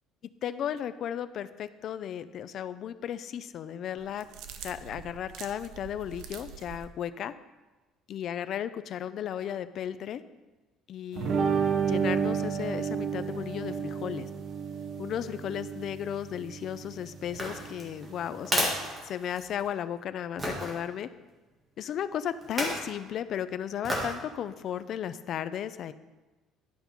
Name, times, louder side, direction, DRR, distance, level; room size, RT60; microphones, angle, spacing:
voice 1, 0.4-4.3 4.6-7.3 8.1-10.2 10.9-11.5 11.9-14.3 15.0-18.8 19.0-21.1 21.8-25.9, left 9 dB, 45° left, 13 dB, 0.4 m, -35 dB
sound 1, 4.0-6.9, right 7 dB, 65° right, 0.7 m, -45 dB
sound 2, 11.2-18.9, right 6 dB, 45° right, 0.9 m, -32 dB
sound 3, 17.3-19.7 20.4-20.7 22.4-22.9 23.8-24.2 24.7-24.8, equal, 15° right, 1.7 m, -32 dB
11.5 x 5.4 x 4.4 m, 1.2 s
cardioid pair, 170°, 0 cm